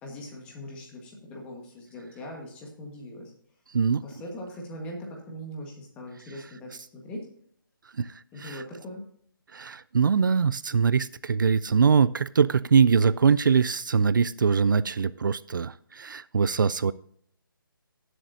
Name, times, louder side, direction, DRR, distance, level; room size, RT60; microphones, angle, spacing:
voice 1, 0.0-3.3 4.0-7.2 8.3-9.0, equal, 10° left, 1.5 m, -41 dB
voice 2, 9.5-16.9, right 6 dB, 60° right, 0.4 m, -22 dB
16.5 x 7.7 x 2.7 m
hypercardioid pair, 170°, 12 cm